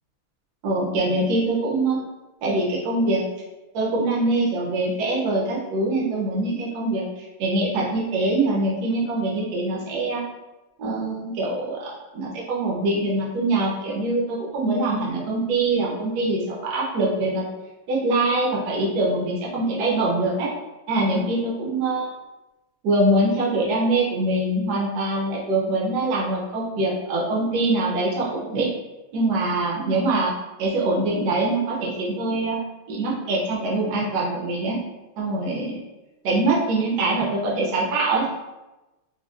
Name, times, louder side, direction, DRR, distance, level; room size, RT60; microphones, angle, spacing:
voice 1, 0.6-2.0 2.4-3.2 3.7-7.0 7.4-10.2 10.8-17.4 17.9-20.5 20.9-22.1 22.8-28.7 29.1-30.3 30.6-32.6 32.9-34.8 35.2-35.8 36.2-38.3, right 2 dB, 90° right, -4 dB, 0.8 m, -23 dB
3.9 x 2.0 x 2.3 m, 1.1 s
omnidirectional pair, 2.4 m